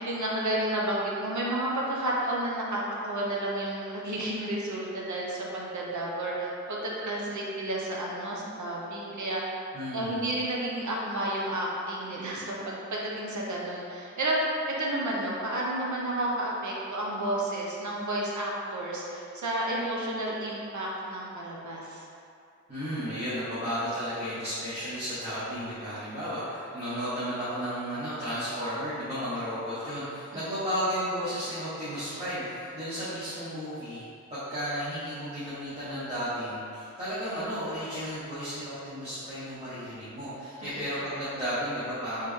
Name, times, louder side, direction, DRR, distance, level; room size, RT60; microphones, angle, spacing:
voice 1, 0.0-9.5 9.9-14.4 14.7-22.0 30.3-30.5 40.6-40.8, right 1 dB, 75° right, -4 dB, 0.8 m, -31 dB
voice 2, 9.7-10.3 22.7-34.0 34.3-42.3, equal, 20° right, -15 dB, 1.4 m, -33 dB
4.3 x 3.3 x 3.6 m, 2.5 s
wide cardioid pair, 135°, 30 cm